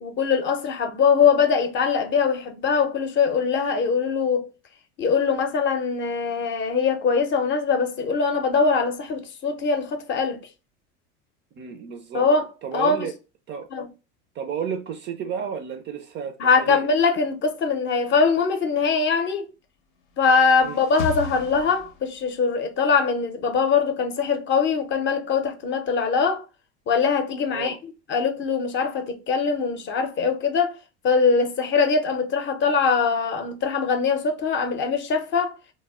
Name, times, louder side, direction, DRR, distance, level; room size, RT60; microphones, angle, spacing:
voice 1, 0.0-4.5 5.0-10.4 12.1-12.4 12.7-13.1 13.7-13.9 16.4-19.5 20.2-26.4 26.9-27.7 28.1-30.7 31.0-35.5, left 5 dB, 35° left, 0.6 m, -22 dB
voice 2, 11.6-12.3 12.6-13.2 13.5-13.7 14.3-16.9 20.6-20.9 27.5-27.8, right 7 dB, 35° right, 0.4 m, -32 dB
sound 1, 20.0-22.4, left 4 dB, 85° left, 0.8 m, -34 dB
2.1 x 2.0 x 3.5 m
supercardioid pair, 105°, 34 cm